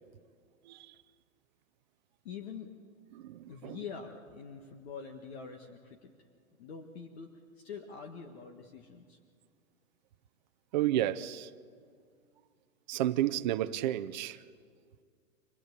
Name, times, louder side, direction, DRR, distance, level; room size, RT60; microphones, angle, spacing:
voice 1, 2.2-2.7 3.5-6.1 6.6-9.2, left 6 dB, 50° left, 1.8 m, -45 dB
voice 2, 3.1-3.8 10.7-11.5 12.9-14.4, right 13 dB, 35° right, 0.6 m, -31 dB
25.0 x 18.5 x 8.3 m
hypercardioid pair, 150°, 41 cm